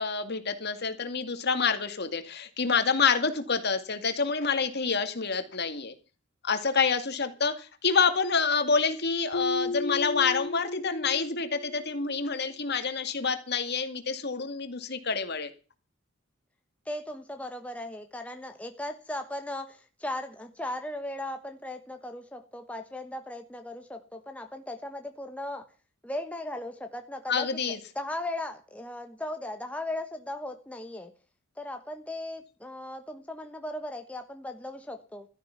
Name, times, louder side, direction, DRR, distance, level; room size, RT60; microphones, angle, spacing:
voice 1, 0.0-5.9 6.4-15.5 27.3-27.8, left 5 dB, 50° left, 8 dB, 2.2 m, -27 dB
Keyboard (musical), 9.3-12.1, left 4 dB, 75° left, 1.1 m, -34 dB
voice 2, 16.8-25.7 26.0-31.1 31.6-35.3, left 1 dB, 5° left, 5 dB, 1.2 m, -37 dB
16.0 x 13.0 x 5.8 m, 0.37 s
head